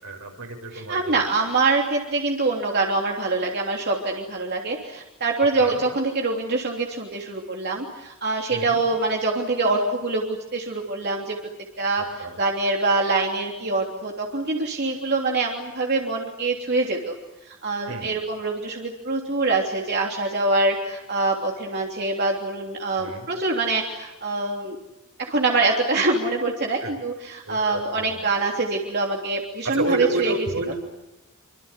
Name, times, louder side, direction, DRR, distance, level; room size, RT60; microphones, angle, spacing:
voice 1, 0.0-1.2 5.6-5.8 8.5-8.8 12.2-12.3 17.9-18.1 23.0-23.3 26.8-26.9 27.5-27.6 28.1-28.2 29.7-30.7, right 2 dB, 80° right, 3 dB, 6.9 m, -29 dB
voice 2, 0.7-11.4 11.8-17.1 17.4-24.8 25.2-30.7, right 3 dB, 50° right, 0 dB, 3.2 m, -25 dB
26.5 x 26.0 x 8.3 m, 0.97 s
head